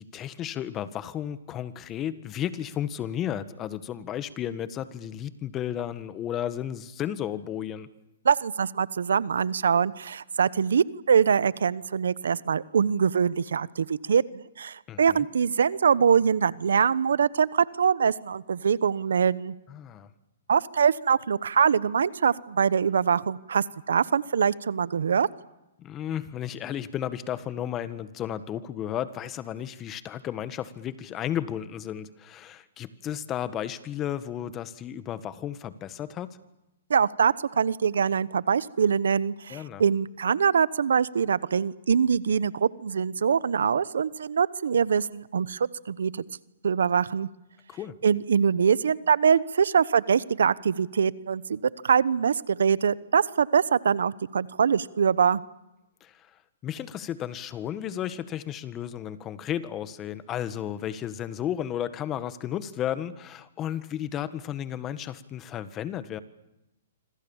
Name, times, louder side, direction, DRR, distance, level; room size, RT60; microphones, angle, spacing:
voice 1, 0.0-7.9 14.9-15.3 19.7-20.1 25.8-36.4 39.5-39.8 47.7-48.0 56.0-56.3 56.6-66.2, left 10 dB, 25° left, 13 dB, 1.6 m, -33 dB
voice 2, 8.2-19.5 20.5-25.3 36.9-46.2 46.6-47.3 48.0-55.4, right 7 dB, 80° right, 19 dB, 1.0 m, -23 dB
26.5 x 26.0 x 7.3 m, 0.94 s
hypercardioid pair, 140°, 0 cm